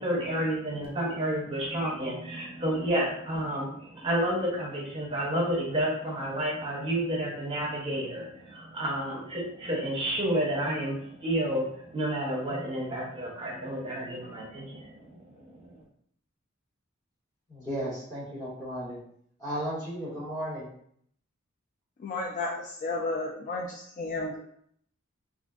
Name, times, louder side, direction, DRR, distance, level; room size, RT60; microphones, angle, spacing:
voice 1, 0.0-15.8, right 1 dB, 25° right, -3 dB, 0.8 m, -30 dB
voice 2, 17.5-19.0 19.4-20.7, equal, 15° left, -9 dB, 1.5 m, -34 dB
voice 3, 22.0-24.4, left 2 dB, 40° left, 0 dB, 0.3 m, -33 dB
4.0 x 2.5 x 2.3 m, 0.65 s
head